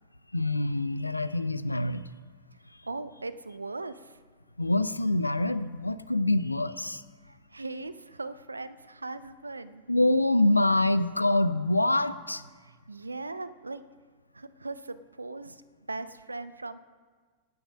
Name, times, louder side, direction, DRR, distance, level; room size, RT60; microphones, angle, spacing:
voice 1, 0.3-2.1 4.6-7.0 9.9-12.4, left 2 dB, 85° left, 16 dB, 0.5 m, -25 dB
voice 2, 2.9-4.2 7.3-9.8 12.6-13.8 14.3-15.6 15.9-16.8, right 3 dB, 80° right, 14 dB, 0.6 m, -39 dB
17.5 x 9.5 x 5.3 m, 1.5 s
figure-of-eight pair, 90°, 0 cm